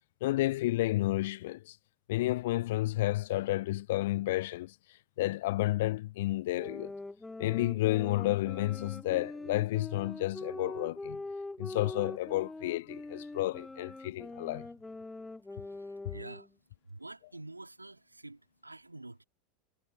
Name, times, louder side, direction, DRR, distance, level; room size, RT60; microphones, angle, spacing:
voice 1, 0.2-1.8 2.1-4.7 5.2-6.9 7.4-11.2 11.6-14.7, left 17 dB, 60° left, 0.5 m, -31 dB
sound 1, 6.6-16.5, left 2 dB, 10° left, 2.2 m, -43 dB
voice 2, 15.6-16.5 16.9-19.2, right 2 dB, 90° right, 2.5 m, -48 dB
figure-of-eight pair, 80°, 0 cm